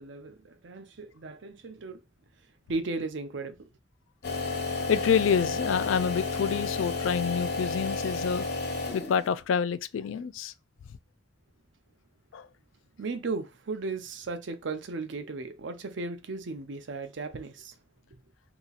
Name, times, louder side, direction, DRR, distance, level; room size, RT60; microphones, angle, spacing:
voice 1, 0.0-2.0 2.7-3.6 13.0-17.7, right 3 dB, 70° right, 0.6 m, -36 dB
sound 1, 4.2-9.4, left 3 dB, 55° left, 0.8 m, -31 dB
voice 2, 4.9-8.4 8.9-10.5 12.3-12.5, left 7 dB, 90° left, 0.3 m, -27 dB
2.9 x 2.4 x 3.9 m
head